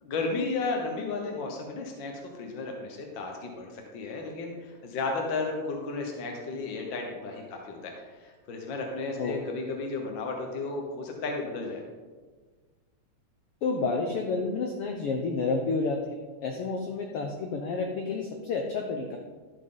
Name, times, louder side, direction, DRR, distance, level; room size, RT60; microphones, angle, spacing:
voice 1, 0.0-11.8, left 3 dB, 65° left, 1 dB, 1.2 m, -34 dB
voice 2, 13.6-19.2, left 4 dB, 80° left, 2 dB, 1.3 m, -30 dB
13.0 x 7.2 x 3.9 m, 1.4 s
omnidirectional pair, 3.6 m